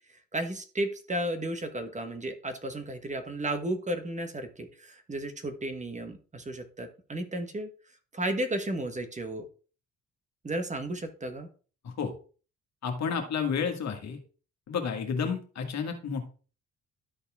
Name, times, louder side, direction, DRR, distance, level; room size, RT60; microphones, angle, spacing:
voice 1, 0.3-7.7 8.1-9.4 10.4-11.5, right 1 dB, 25° right, 7 dB, 1.3 m, -33 dB
voice 2, 12.8-14.2 14.7-16.2, left 6 dB, 60° left, 5 dB, 1.8 m, -31 dB
12.5 x 4.3 x 3.6 m, 0.38 s
cardioid pair, 90°, 30 cm